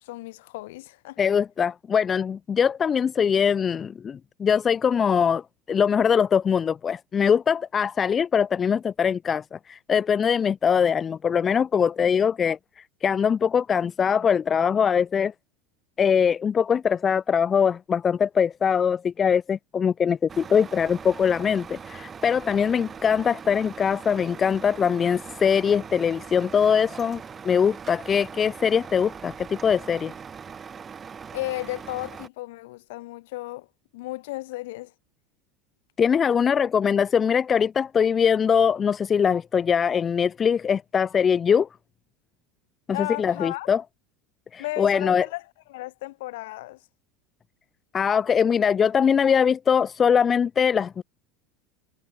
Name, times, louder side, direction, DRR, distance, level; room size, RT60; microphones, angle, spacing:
voice 1, 0.0-1.2 31.3-33.7 33.9-34.9 42.9-43.7 44.6-46.8, left 19 dB, 70° left, 2.9 m, -34 dB
voice 2, 1.2-15.3 16.0-30.1 36.0-41.7 43.0-43.8 44.5-45.2 47.9-51.0, left 7 dB, 30° left, 0.3 m, -22 dB
Truck, 20.3-32.3, right 6 dB, 30° right, 3.8 m, -41 dB
hypercardioid pair, 80°, 0 cm